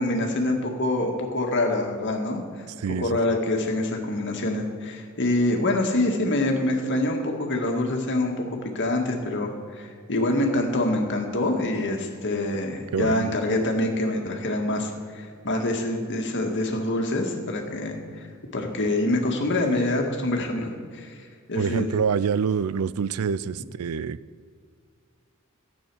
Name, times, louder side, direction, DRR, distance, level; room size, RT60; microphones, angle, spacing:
voice 1, 0.0-2.7 3.0-8.5 8.7-18.3 18.5-21.2 21.5-21.9, left 1 dB, 55° left, 2 dB, 1.9 m, -25 dB
voice 2, 2.8-3.1 12.9-13.3 21.5-24.2, right 6 dB, 90° right, 19 dB, 0.4 m, -26 dB
14.0 x 9.0 x 6.3 m, 2.1 s
head